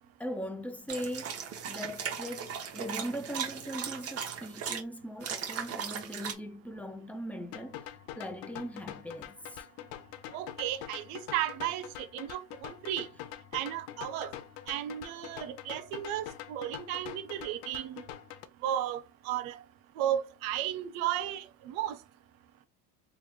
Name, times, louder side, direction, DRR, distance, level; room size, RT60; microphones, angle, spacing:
voice 1, 0.2-9.7, equal, 5° left, 0.4 m, -40 dB
sound 1, 0.9-4.8 5.2-6.3, right 7 dB, 35° right, 0.9 m, -37 dB
sound 2, 7.5-18.5, left 12 dB, 75° left, 0.6 m, -45 dB
voice 2, 10.3-13.1 13.5-14.3 14.7-18.0 18.6-19.6 20.0-22.0, right 11 dB, 80° right, 0.7 m, -34 dB
3.3 x 2.3 x 3.2 m
supercardioid pair, 100°, 41 cm